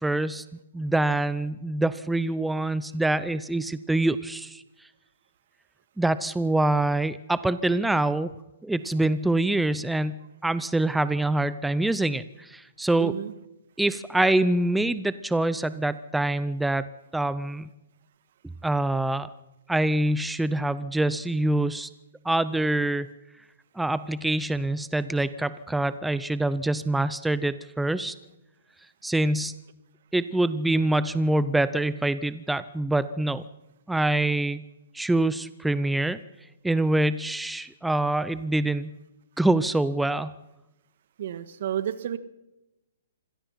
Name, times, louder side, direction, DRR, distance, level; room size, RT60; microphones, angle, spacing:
voice 1, 0.0-0.4 0.7-4.6 6.0-8.3 8.6-10.1 10.4-13.1 13.8-16.9 17.1-17.7 18.6-19.3 19.7-21.9 22.2-23.1 23.8-28.1 29.0-29.5 30.1-33.4 33.9-34.6 34.9-36.2 36.6-38.9 39.4-40.3, right 2 dB, 5° right, 15 dB, 0.6 m, -25 dB
voice 2, 13.0-13.3 41.2-42.2, right 10 dB, 60° right, 14 dB, 1.6 m, -31 dB
26.0 x 17.5 x 5.7 m, 0.96 s
hypercardioid pair, 140°, 0 cm